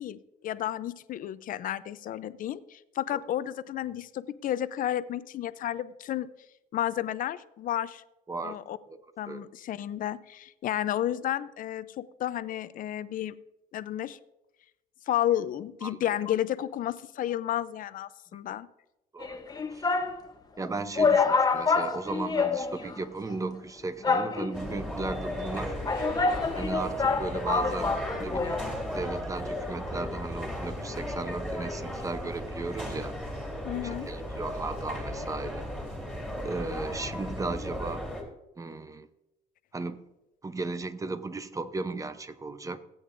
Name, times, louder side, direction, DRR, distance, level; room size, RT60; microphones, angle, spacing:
voice 1, 0.0-6.3 6.7-8.0 8.4-8.8 9.2-13.4 13.7-14.2 15.1-18.7 33.6-34.1, left 12 dB, 55° left, 15 dB, 0.5 m, -32 dB
sound 1, 19.2-20.2 20.6-20.7 21.0-23.0 23.3-23.4 24.0-24.8 25.5-28.7 28.9-29.0, left 4 dB, 25° left, 0.9 m, -27 dB
voice 2, 20.6-25.8 26.5-28.6 28.9-33.1 33.8-35.7 36.4-38.1 38.6-39.1 39.7-40.0 40.4-42.8, right 3 dB, 20° right, 11 dB, 0.8 m, -36 dB
sound 2, 24.5-38.2, equal, 5° right, 2.7 m, -35 dB
17.0 x 8.6 x 2.6 m, 0.92 s
cardioid pair, 110°, 17 cm